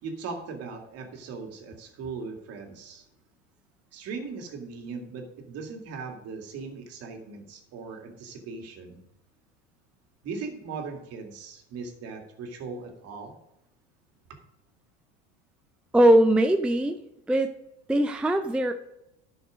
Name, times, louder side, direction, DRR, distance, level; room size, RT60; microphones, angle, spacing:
voice 1, 0.0-3.1 3.9-9.0 10.2-13.3 14.3-14.4, right 4 dB, 50° right, 3 dB, 2.4 m, -39 dB
voice 2, 15.9-17.0 17.3-17.5 17.9-18.7, right 1 dB, 5° right, 6 dB, 0.5 m, -20 dB
11.5 x 6.3 x 5.1 m, 0.87 s
supercardioid pair, 115°, 32 cm